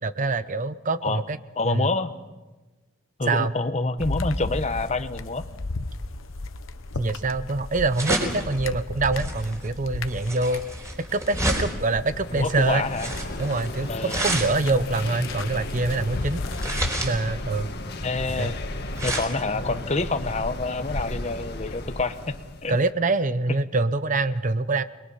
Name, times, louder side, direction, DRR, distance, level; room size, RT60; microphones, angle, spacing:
voice 1, 0.0-1.4 1.6-1.9 3.3-3.5 7.0-10.6 11.1-12.8 13.4-16.4 17.0-17.7 18.4-18.5 22.7-24.8, right 3 dB, 40° right, 13 dB, 0.8 m, -25 dB
voice 2, 1.6-2.1 3.2-5.5 12.3-13.1 13.9-14.2 18.0-18.6 19.0-22.4 22.6-22.8, left 3 dB, 35° left, 10 dB, 1.1 m, -27 dB
sound 1, 4.0-12.6 12.9-16.9, left 2 dB, 80° left, 1.1 m, -35 dB
sound 2, 6.4-21.2, right 1 dB, 15° right, 4.6 m, -32 dB
sound 3, 12.0-22.8, left 1 dB, 55° left, 2.0 m, -34 dB
29.0 x 22.0 x 5.7 m, 1.1 s
head